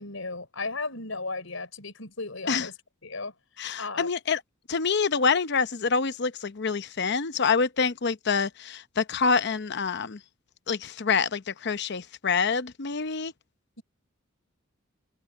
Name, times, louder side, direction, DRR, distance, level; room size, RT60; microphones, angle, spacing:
voice 1, 0.0-2.7 3.0-3.3 3.8-4.1, left 3 dB, 80° left, 5.2 m, -35 dB
voice 2, 3.6-4.4 4.7-10.2 10.7-13.3, left 5 dB, 55° left, 0.8 m, -26 dB
head